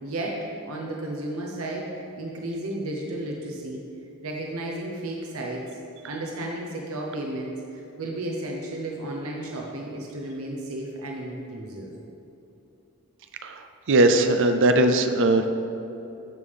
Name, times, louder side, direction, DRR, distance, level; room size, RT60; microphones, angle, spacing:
voice 1, 0.0-1.9 2.2-3.8 4.2-5.6 6.0-11.9, right 1 dB, 80° right, -1 dB, 1.0 m, -33 dB
voice 2, 13.9-15.5, right 2 dB, 60° right, 7 dB, 0.5 m, -19 dB
13.0 x 5.4 x 3.5 m, 2.9 s
head